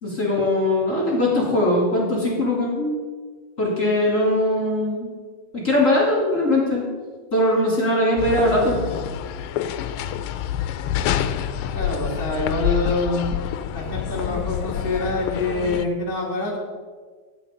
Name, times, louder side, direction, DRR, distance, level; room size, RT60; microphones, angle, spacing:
voice 1, 0.0-3.0 3.6-5.1 5.5-6.9 7.3-8.8, left 1 dB, 20° left, -5 dB, 3.0 m, -20 dB
sound 1, 8.2-15.9, left 10 dB, 80° left, 2.2 m, -27 dB
voice 2, 11.7-13.3 13.7-16.6, left 2 dB, 10° right, -4 dB, 1.5 m, -25 dB
12.5 x 9.7 x 5.3 m, 1.5 s
omnidirectional pair, 4.4 m